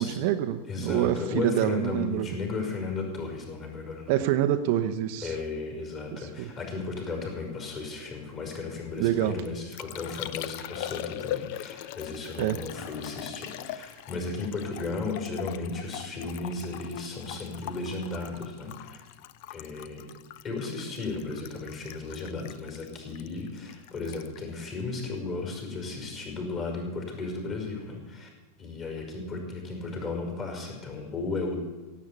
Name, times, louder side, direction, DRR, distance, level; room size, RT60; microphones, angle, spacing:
voice 1, 0.0-2.3 4.1-5.3 6.1-6.5 9.0-9.3 12.4-12.6, right 12 dB, 45° right, 8 dB, 0.9 m, -26 dB
voice 2, 0.7-4.1 5.2-19.0 19.5-20.0 20.4-28.3 28.6-31.6, left 3 dB, 30° left, 2 dB, 5.3 m, -35 dB
Liquid, 9.0-25.6 25.9-26.4, left 13 dB, 45° left, 0.6 m, -41 dB
16.5 x 8.5 x 8.5 m, 1.3 s
figure-of-eight pair, 90°, 0 cm